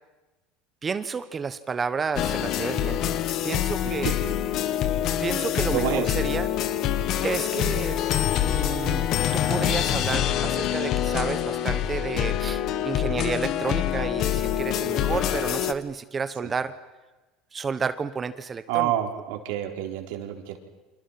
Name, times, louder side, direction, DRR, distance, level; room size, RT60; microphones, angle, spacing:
voice 1, 0.8-3.2 3.4-4.1 5.2-5.8 6.2-6.5 7.2-8.0 8.4-16.7 17.5-18.9, right 5 dB, 20° right, 12 dB, 1.1 m, -31 dB
sound 1, 2.2-15.7, left 10 dB, 45° left, 1.4 m, -25 dB
voice 2, 3.8-4.3 5.7-6.1 16.4-16.5 18.7-20.6, right 11 dB, 80° right, 4 dB, 4.4 m, -28 dB
30.0 x 27.0 x 6.0 m, 1.1 s
cardioid pair, 145°, 0 cm